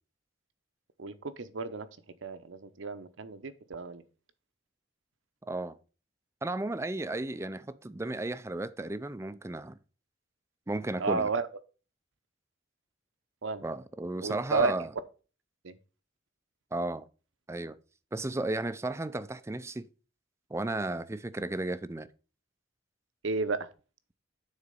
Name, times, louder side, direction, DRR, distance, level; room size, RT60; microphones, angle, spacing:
voice 1, 1.0-1.9 2.2-4.0 11.0-11.5 13.4-13.6 14.2-14.7 15.6-15.7 23.2-23.7, right 4 dB, 75° right, 0.7 m, -32 dB
voice 2, 5.4-5.8 6.4-9.8 10.7-11.3 13.6-14.9 16.7-17.0 17.5-17.8 18.1-19.9 20.5-22.1, right 2 dB, 15° right, 0.4 m, -34 dB
9.7 x 4.1 x 5.3 m
head